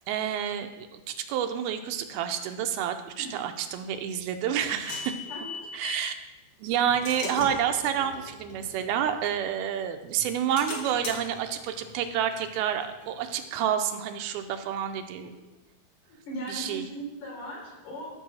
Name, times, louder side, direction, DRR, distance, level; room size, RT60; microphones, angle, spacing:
voice 1, 0.1-5.1 5.7-6.1 6.6-15.3 16.5-16.8, right 9 dB, 85° right, 7 dB, 2.5 m, -29 dB
sound 1, 3.9-6.1 6.7-9.8 10.2-13.6, left 3 dB, 50° left, 2.0 m, -41 dB
voice 2, 16.1-18.1, right 1 dB, 75° left, -3 dB, 5.3 m, -39 dB
13.5 x 4.7 x 6.2 m, 1.0 s
omnidirectional pair, 4.4 m